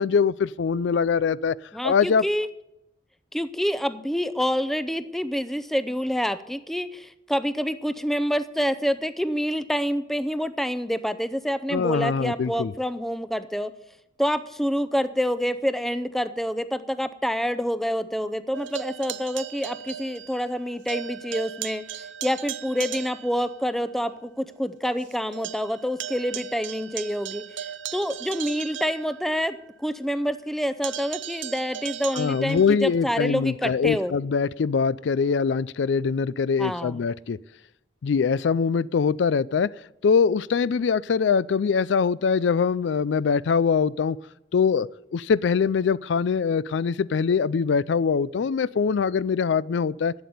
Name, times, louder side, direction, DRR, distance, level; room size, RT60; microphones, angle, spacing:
voice 1, 0.0-1.6 1.8-2.2 11.7-12.7 32.1-37.4 38.0-39.7 40.0-44.2 44.5-50.1, left 6 dB, 80° left, 0.4 m, -23 dB
voice 2, 1.7-2.5 3.3-13.7 14.2-21.8 22.2-27.4 27.9-34.1 36.6-37.0, equal, ahead, 0.5 m, -27 dB
sound 1, 18.5-20.6 20.9-23.5 24.0-24.1 24.5-24.6 24.8-29.6 30.8-32.7, right 10 dB, 90° right, 0.6 m, -37 dB
12.0 x 8.4 x 9.5 m
head